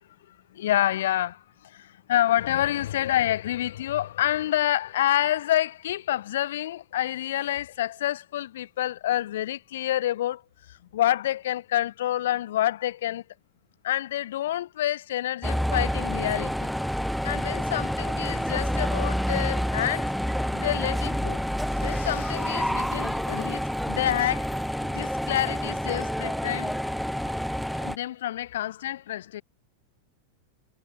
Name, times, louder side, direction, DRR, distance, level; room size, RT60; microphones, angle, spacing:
voice 1, 0.3-10.4 10.7-13.2 13.8-16.7 17.2-20.1 20.5-21.4 21.8-23.6 23.9-24.6 24.8-26.8 27.8-29.4, left 13 dB, 60° left, 5.5 m, -28 dB
sound 1, 15.4-28.0, equal, ahead, 5.6 m, -28 dB
figure-of-eight pair, 90°, 0 cm